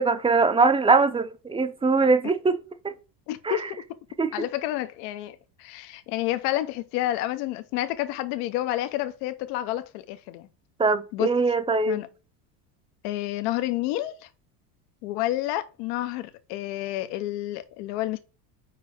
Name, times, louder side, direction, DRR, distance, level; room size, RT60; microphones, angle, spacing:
voice 1, 0.0-2.9 3.4-3.6 4.2-4.3 10.8-12.0, right 4 dB, 10° right, 0.5 m, -22 dB
voice 2, 3.3-3.8 4.3-10.5 11.1-11.3 11.9-12.1 13.0-14.3 15.0-18.2, left 15 dB, 75° left, 0.8 m, -29 dB
4.8 x 4.8 x 4.7 m
supercardioid pair, 115°, 47 cm